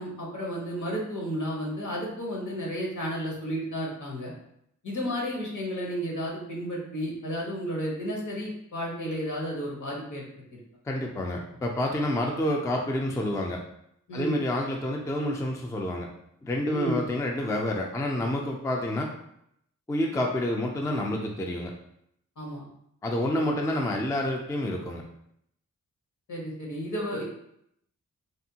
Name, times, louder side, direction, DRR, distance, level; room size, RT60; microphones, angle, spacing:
voice 1, 0.0-4.3 4.8-10.2 14.1-14.4 16.7-17.0 22.4-22.7 26.3-27.2, equal, 70° left, -3 dB, 1.1 m, -32 dB
voice 2, 10.8-13.6 14.1-16.1 16.4-19.1 19.9-21.7 23.0-25.0, left 1 dB, 10° left, 1 dB, 0.3 m, -28 dB
3.4 x 2.2 x 2.7 m, 0.74 s
wide cardioid pair, 100°, 32 cm